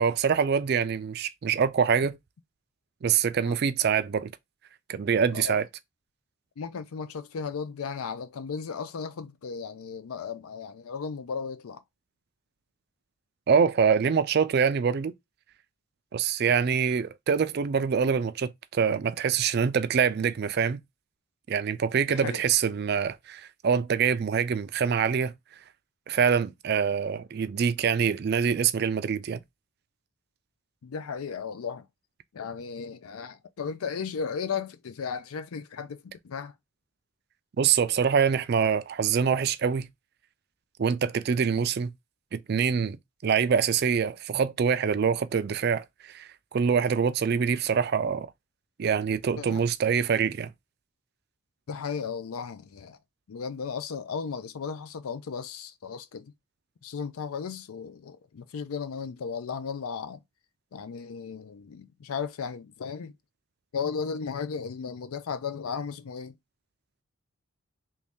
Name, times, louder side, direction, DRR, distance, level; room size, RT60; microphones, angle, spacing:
voice 1, 0.0-2.2 3.0-4.3 4.9-5.7 13.5-15.1 16.1-20.8 21.5-25.3 26.1-29.4 37.6-39.9 40.8-41.9 42.3-48.3 48.8-50.5, right 6 dB, 45° right, 0.3 m, -25 dB
voice 2, 6.6-11.8 22.1-22.4 30.8-31.9 32.3-36.5 49.4-49.6 51.7-53.0 53.3-56.3 56.8-60.2 60.7-63.1 63.7-66.4, left 6 dB, 85° left, 0.4 m, -35 dB
3.1 x 2.7 x 3.5 m
head